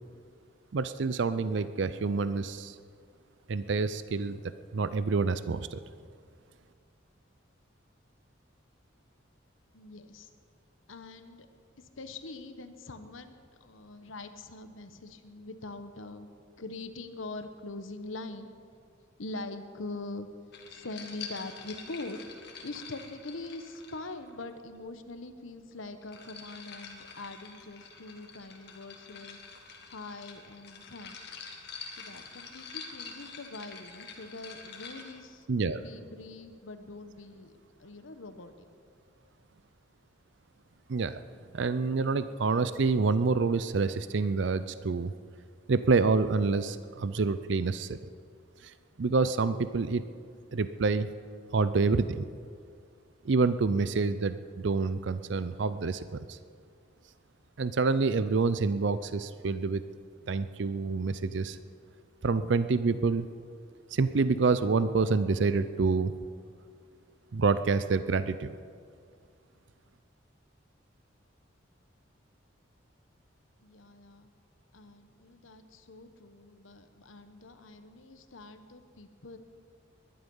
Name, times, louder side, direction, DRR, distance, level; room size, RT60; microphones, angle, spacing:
voice 1, 0.7-2.8 3.5-5.8 35.5-35.8 40.9-41.2 41.5-45.1 45.7-48.0 48.6-50.0 50.5-51.1 51.5-52.2 53.2-56.4 57.6-59.8 60.3-61.6 62.2-63.3 63.9-66.1 67.3-68.6, right 4 dB, 65° right, 13 dB, 0.5 m, -27 dB
voice 2, 9.7-10.3 10.9-11.5 11.8-13.3 13.6-16.3 16.6-18.5 19.2-20.3 20.7-22.2 22.6-29.4 29.9-31.2 32.0-35.5 35.7-37.5 37.8-38.5 73.6-74.3 74.7-79.4, left 2 dB, 85° left, 9 dB, 1.1 m, -43 dB
sound 1, 20.5-24.4 25.7-35.2, left 5 dB, 55° left, 1.9 m, -46 dB
21.0 x 11.5 x 5.5 m, 2.2 s
head